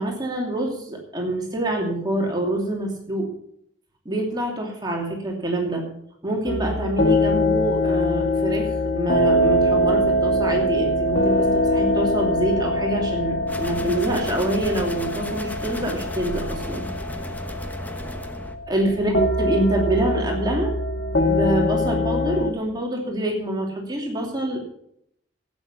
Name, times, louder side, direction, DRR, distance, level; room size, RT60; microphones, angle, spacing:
voice 1, 0.0-3.3 4.0-5.8 6.2-16.9 18.7-20.7 21.2-24.6, right 1 dB, 20° right, 0 dB, 2.8 m, -26 dB
sound 1, 6.5-22.5, left 1 dB, 55° left, 1.6 m, -23 dB
sound 2, 13.5-18.6, equal, 10° left, 1.1 m, -34 dB
12.5 x 8.8 x 7.1 m, 0.73 s
head